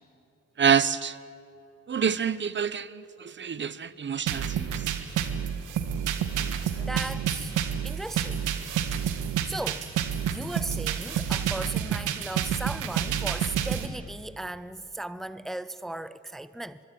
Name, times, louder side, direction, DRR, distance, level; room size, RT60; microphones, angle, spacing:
voice 1, 0.6-1.2 1.9-4.9, right 7 dB, 40° right, 0.9 m, -27 dB
sound 1, 4.3-13.9, right 8 dB, 90° right, 1.9 m, -29 dB
voice 2, 6.8-7.5 7.8-8.4 9.5-9.9 10.2-16.8, right 2 dB, ahead, 0.7 m, -36 dB
24.5 x 23.0 x 9.4 m
cardioid pair, 90°, 30 cm